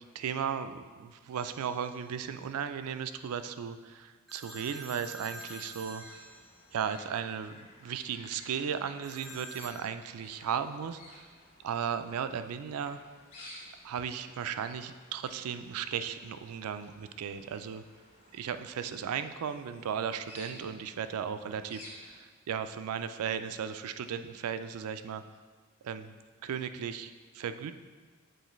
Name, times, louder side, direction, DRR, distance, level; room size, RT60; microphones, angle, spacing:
voice 1, 0.0-6.0 6.7-11.3 11.6-13.0 13.8-17.8 18.3-25.2 25.8-26.1 26.4-27.7, right 7 dB, 80° right, 10 dB, 0.3 m, -36 dB
sound 1, 1.4-2.1 4.3-6.9 9.0-9.8, equal, ahead, 0.4 m, -48 dB
sound 2, 5.3-22.2, left 1 dB, 70° left, 1.7 m, -55 dB
7.9 x 4.0 x 3.1 m, 1.4 s
head